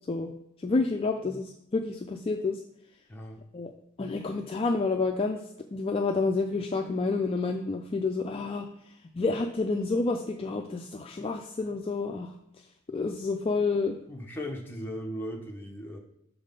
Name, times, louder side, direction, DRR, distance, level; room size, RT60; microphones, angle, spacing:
voice 1, 0.6-2.6 3.5-3.7 4.0-5.4 5.7-8.7 9.1-12.3 12.9-14.0, left 3 dB, 25° left, 4 dB, 0.3 m, -29 dB
voice 2, 14.1-16.0, equal, 10° left, 0 dB, 0.8 m, -37 dB
6.3 x 3.9 x 5.1 m, 0.82 s
head